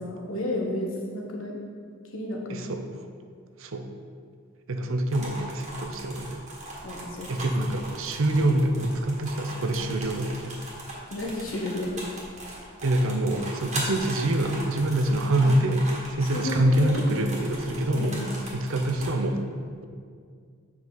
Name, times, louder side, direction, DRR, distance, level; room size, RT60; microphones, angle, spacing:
voice 1, 0.0-1.6 2.1-2.7 6.8-7.3 11.1-11.9 15.4-15.5 16.3-17.0 17.9-18.4, left 1 dB, 75° left, -1 dB, 1.2 m, -32 dB
voice 2, 2.5-2.8 3.6-3.9 4.7-6.4 7.3-10.6 12.8-18.2 18.5-19.4, right 1 dB, 70° right, 6 dB, 0.6 m, -25 dB
sound 1, 5.1-19.1, right 1 dB, 35° right, 1.6 m, -39 dB
7.5 x 5.5 x 3.9 m, 2.1 s
head